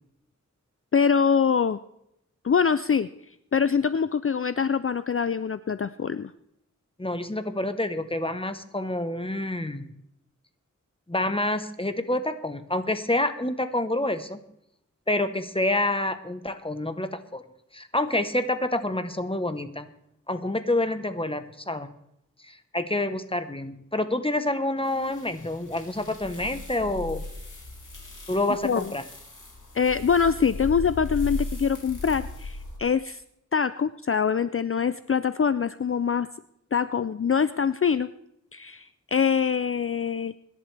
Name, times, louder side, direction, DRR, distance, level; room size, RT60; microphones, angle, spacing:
voice 1, 0.9-1.8 2.4-3.1 3.5-6.3 28.6-28.9 29.7-33.2 33.5-36.3 36.7-38.1 38.5-40.4, left 6 dB, 45° left, 14 dB, 0.4 m, -24 dB
voice 2, 7.0-9.9 11.1-14.4 15.1-17.4 17.7-19.9 20.3-21.9 22.4-27.2 28.3-29.0, left 1 dB, 20° left, 9 dB, 1.0 m, -28 dB
sound 1, 24.9-32.8, left 3 dB, 85° left, 3.0 m, -37 dB
24.0 x 11.0 x 3.3 m, 0.80 s
wide cardioid pair, 55°, 30 cm